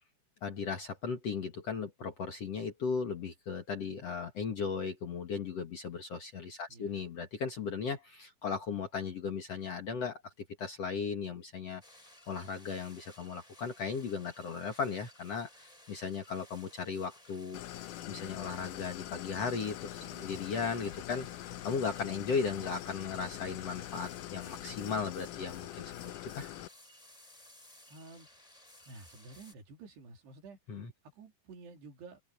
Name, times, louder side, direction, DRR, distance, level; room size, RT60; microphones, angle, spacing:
voice 1, 0.4-11.8 12.3-17.6 18.1-25.9 26.2-26.5 30.7-30.9, left 5 dB, 50° left, 2.1 m, -36 dB
voice 2, 6.7-7.0 20.0-20.4 27.9-28.5 28.9-30.6 31.0-32.2, right 3 dB, 80° right, 5.4 m, -51 dB
sound 1, 11.8-29.5, left 1 dB, 10° left, 5.2 m, -58 dB
Idling, 17.5-26.7, left 14 dB, 85° left, 1.8 m, -44 dB
open air
omnidirectional pair, 4.8 m